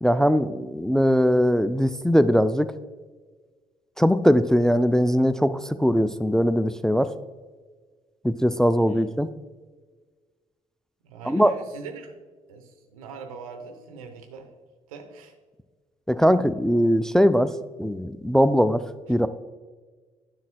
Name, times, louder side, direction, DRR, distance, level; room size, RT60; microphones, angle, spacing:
voice 1, 0.0-2.7 4.0-7.1 8.2-9.3 11.3-11.5 16.1-17.5 17.8-18.8 19.1-19.3, equal, 5° left, 13 dB, 0.3 m, -20 dB
voice 2, 11.0-12.2 12.5-14.5 14.9-15.3, right 5 dB, 80° right, 5 dB, 0.9 m, -41 dB
9.4 x 7.2 x 2.3 m, 1.4 s
hypercardioid pair, 50°, 18 cm